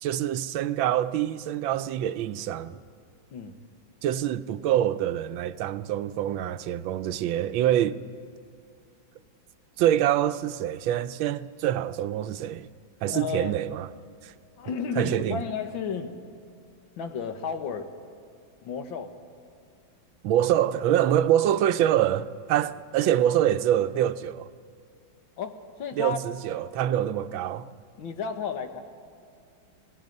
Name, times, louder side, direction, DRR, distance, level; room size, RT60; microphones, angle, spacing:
voice 1, 0.0-2.8 4.0-8.0 9.8-12.7 13.0-13.9 14.2-14.3 15.0-15.4 20.2-24.5 26.0-27.7, right 11 dB, 90° right, 1.4 m, -25 dB
voice 2, 13.1-13.6 14.6-16.2 17.0-17.9 18.6-19.2 25.4-26.2 28.0-28.8, left 6 dB, 85° left, 2.0 m, -33 dB
26.5 x 19.0 x 5.3 m
omnidirectional pair, 2.1 m